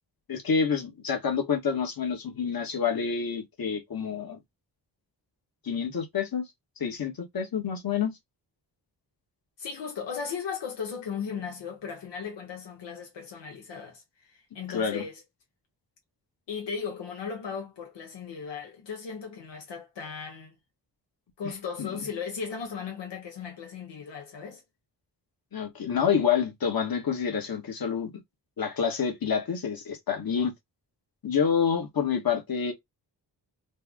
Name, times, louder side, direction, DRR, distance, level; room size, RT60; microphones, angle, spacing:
voice 1, 0.3-4.4 5.6-6.4 6.8-8.1 14.7-15.0 21.8-21.9 25.5-28.1 28.6-30.5 31.2-32.7, left 7 dB, 55° left, 1.3 m, -28 dB
voice 2, 9.6-14.0 14.3-15.2 16.5-20.5 21.4-24.6, left 6 dB, 90° left, 1.0 m, -36 dB
3.4 x 2.0 x 3.5 m
cardioid pair, 70°, 41 cm